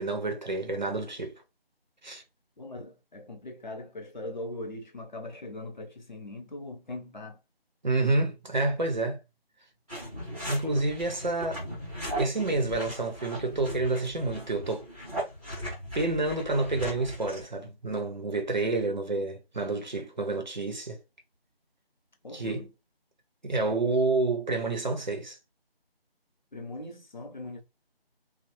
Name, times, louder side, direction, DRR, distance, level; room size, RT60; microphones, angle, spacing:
voice 1, 0.0-1.4 2.0-2.2 7.8-9.2 10.5-11.6 12.2-14.9 15.9-21.0 22.3-22.7 23.4-25.4, right 2 dB, 50° right, 0.8 m, -29 dB
voice 2, 2.6-7.4 22.2-22.7 26.5-27.6, left 2 dB, 50° left, 0.8 m, -40 dB
sound 1, 9.9-17.5, equal, 5° right, 0.9 m, -38 dB
3.1 x 2.1 x 2.9 m
figure-of-eight pair, 165°, 31 cm